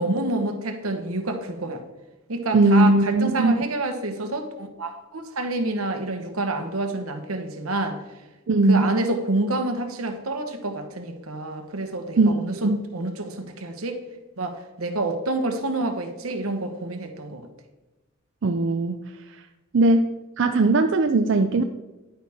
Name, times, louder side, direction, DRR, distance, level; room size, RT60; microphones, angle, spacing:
voice 1, 0.0-1.8 2.3-8.0 8.7-14.0 14.4-17.5, right 2 dB, 85° right, 6 dB, 1.2 m, -28 dB
voice 2, 2.5-3.6 8.5-8.9 12.2-12.8 18.4-19.0 19.7-20.1 20.4-21.6, right 2 dB, 60° right, 6 dB, 0.5 m, -19 dB
10.5 x 9.2 x 3.6 m, 1.1 s
head